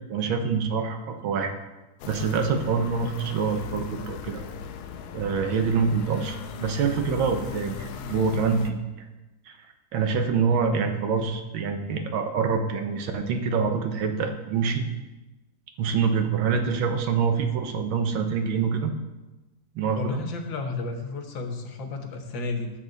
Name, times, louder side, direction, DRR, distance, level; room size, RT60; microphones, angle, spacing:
voice 1, 0.1-1.5 2.1-4.4 5.1-8.8 9.5-9.6 9.9-14.8 15.8-18.9 19.8-20.2, right 5 dB, 80° right, 5 dB, 1.8 m, -25 dB
sound 1, 2.0-8.7, left 8 dB, 85° left, 1.5 m, -38 dB
voice 2, 20.0-22.7, left 3 dB, 70° left, 5 dB, 1.8 m, -32 dB
12.5 x 7.6 x 4.0 m, 1.1 s
omnidirectional pair, 2.2 m